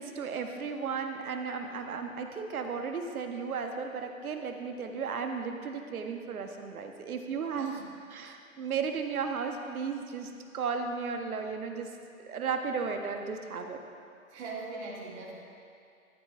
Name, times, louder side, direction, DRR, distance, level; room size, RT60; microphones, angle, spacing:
voice 1, 0.0-7.8 8.1-10.3 10.5-11.9 12.2-13.8, right 5 dB, 80° right, 5 dB, 1.1 m, -34 dB
voice 2, 7.6-7.9 14.3-15.3, right 3 dB, 50° right, -3 dB, 2.5 m, -40 dB
14.0 x 11.0 x 2.5 m, 2.5 s
hypercardioid pair, 130°, 43 cm